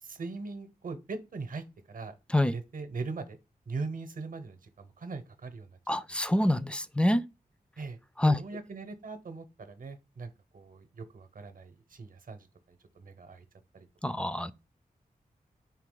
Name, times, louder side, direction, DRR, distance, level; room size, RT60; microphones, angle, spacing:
voice 1, 0.0-2.1 2.4-3.4 3.7-5.7 6.1-6.2 7.8-13.4 13.7-13.9, right 4 dB, 65° right, 0.8 m, -41 dB
voice 2, 5.9-7.2 8.2-8.4 14.0-14.5, left 1 dB, 5° left, 0.3 m, -26 dB
4.7 x 2.8 x 3.8 m
cardioid pair, 55°, 16 cm